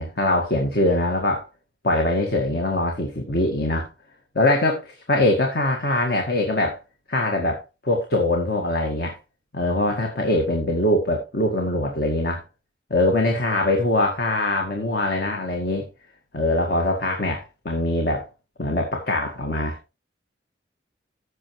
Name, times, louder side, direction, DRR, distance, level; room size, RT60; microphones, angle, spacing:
voice 1, 0.0-1.4 1.8-3.9 4.4-6.8 7.1-9.2 9.5-12.4 12.9-15.9 16.3-18.3 18.6-19.8, left 1 dB, 60° left, 1.9 m, -22 dB
15.0 x 6.5 x 3.2 m
head